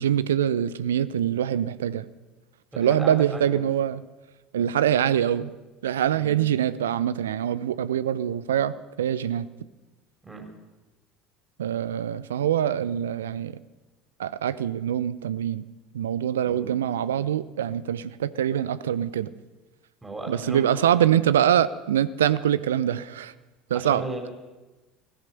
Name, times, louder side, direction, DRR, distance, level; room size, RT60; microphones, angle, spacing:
voice 1, 0.0-2.0 2.8-4.0 4.5-5.5 5.8-9.5 11.6-13.5 14.2-15.6 15.9-19.3 20.3-23.3 23.7-24.0, right 10 dB, 80° right, 17 dB, 0.6 m, -24 dB
voice 2, 2.7-3.6 6.1-6.3 10.2-10.5 16.5-16.7 20.0-20.9 23.7-24.3, right 2 dB, 10° right, 1 dB, 3.9 m, -36 dB
17.0 x 14.5 x 5.9 m, 1.2 s
hypercardioid pair, 65°, 0 cm